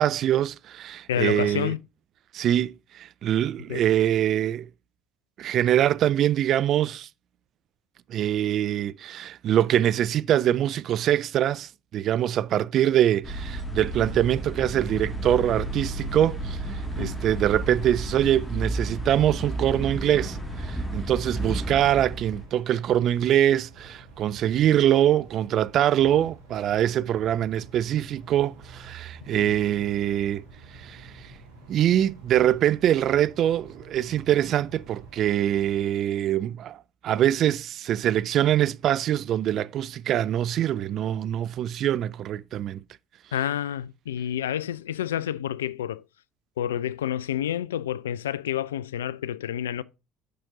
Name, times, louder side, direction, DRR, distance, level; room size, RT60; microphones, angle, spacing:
voice 1, 0.0-1.7 2.3-4.7 5.4-7.1 8.1-30.4 30.7-31.3 31.7-42.8, right 11 dB, 50° right, 0.3 m, -24 dB
voice 2, 1.1-1.8 3.7-3.8 17.0-17.1 29.3-29.5 43.3-46.0 46.6-49.8, left 10 dB, 80° left, 0.3 m, -29 dB
sound 1, 13.2-22.5, right 1 dB, 10° left, 2.0 m, -32 dB
sound 2, 15.9-35.7, right 3 dB, 80° right, 2.2 m, -48 dB
6.5 x 5.9 x 3.8 m
hypercardioid pair, 60°, 0 cm